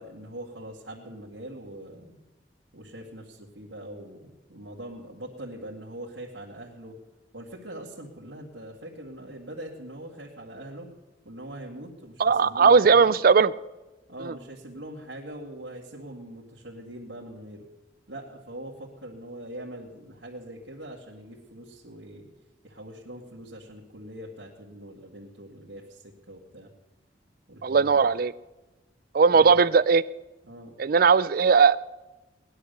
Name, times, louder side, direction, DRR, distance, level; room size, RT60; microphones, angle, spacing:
voice 1, 0.0-2.2 2.7-7.0 7.3-10.9 11.2-13.1 14.1-17.7 18.1-22.3 22.6-26.7 27.5-28.1 29.3-29.7 30.4-30.7, right 1 dB, 90° right, -4 dB, 2.1 m, -42 dB
voice 2, 12.2-13.5 14.2-14.3 27.6-28.3 29.1-30.0 30.8-31.8, right 5 dB, 50° right, 18 dB, 0.4 m, -18 dB
19.0 x 11.0 x 6.8 m, 1.1 s
head